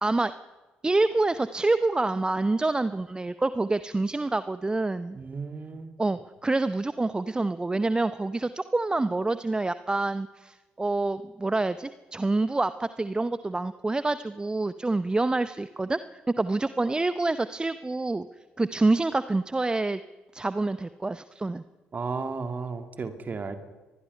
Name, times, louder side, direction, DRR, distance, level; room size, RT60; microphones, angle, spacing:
voice 1, 0.0-0.3 0.8-5.2 6.0-18.3 18.6-20.0 20.3-21.6, right 2 dB, 15° right, 14 dB, 0.7 m, -27 dB
voice 2, 5.1-5.9 21.9-23.6, right 4 dB, 35° right, 7 dB, 2.6 m, -34 dB
24.5 x 20.0 x 5.6 m, 1.2 s
figure-of-eight pair, 45°, 5 cm